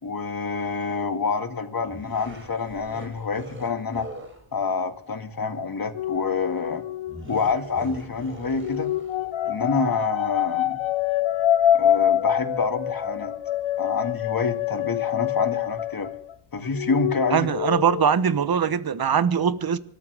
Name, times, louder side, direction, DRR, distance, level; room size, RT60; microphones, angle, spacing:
voice 1, 0.0-4.1 4.5-6.8 7.3-8.9 9.5-10.8 11.7-13.3 13.8-16.1 16.5-17.5, left 4 dB, 45° left, 2.1 m, -27 dB
sound 1, 1.8-4.5 7.1-9.4, right 1 dB, 25° right, 4.2 m, -42 dB
sound 2, 5.9-8.0 8.6-16.3 16.6-18.1, left 11 dB, 70° left, 0.8 m, -26 dB
voice 2, 17.3-19.8, right 7 dB, 45° right, 1.1 m, -22 dB
25.5 x 13.5 x 3.5 m
wide cardioid pair, 95°, 49 cm